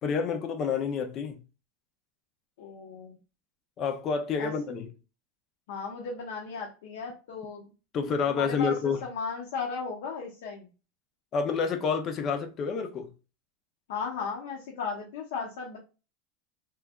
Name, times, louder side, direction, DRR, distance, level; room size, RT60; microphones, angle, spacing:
voice 1, 0.0-1.4 3.8-4.9 7.9-9.0 11.3-13.1, left 5 dB, 25° left, 0.5 m, -29 dB
voice 2, 2.6-3.2 4.4-4.5 5.7-7.7 8.3-8.8 9.0-10.7 13.9-15.8, left 5 dB, 75° left, 0.9 m, -35 dB
3.5 x 3.2 x 2.3 m
supercardioid pair, 175°, 0 cm